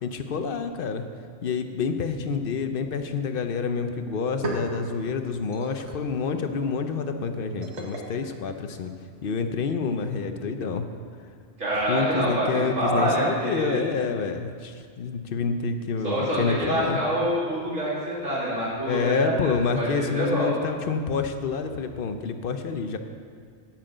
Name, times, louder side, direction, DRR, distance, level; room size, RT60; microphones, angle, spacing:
voice 1, 0.0-1.0 1.4-8.9 9.2-10.9 11.9-17.0 18.8-23.0, left 5 dB, 55° left, 8 dB, 0.7 m, -28 dB
sound 1, 4.1-9.3, right 2 dB, 60° right, 1.6 m, -39 dB
voice 2, 11.6-13.9 16.0-20.5, right 1 dB, 80° right, -7 dB, 3.1 m, -26 dB
8.7 x 6.0 x 7.8 m, 2.1 s
omnidirectional pair, 1.3 m